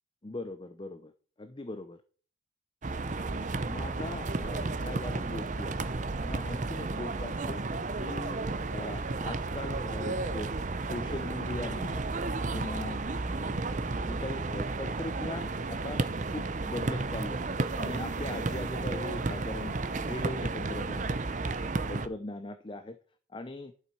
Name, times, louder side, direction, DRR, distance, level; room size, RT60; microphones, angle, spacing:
voice 1, 0.2-1.1 1.4-2.0 3.0-3.1 3.7-5.9 6.2-7.6 8.0-8.4 8.7-10.5 10.8-12.1 12.5-13.0 13.3-16.0 16.3-17.4 17.8-21.1 21.6-23.0 23.3-23.7, left 2 dB, 25° left, 10 dB, 0.6 m, -40 dB
sound 1, 2.8-22.1, right 3 dB, 40° right, 0.7 m, -33 dB
11.5 x 7.1 x 4.7 m, 0.43 s
head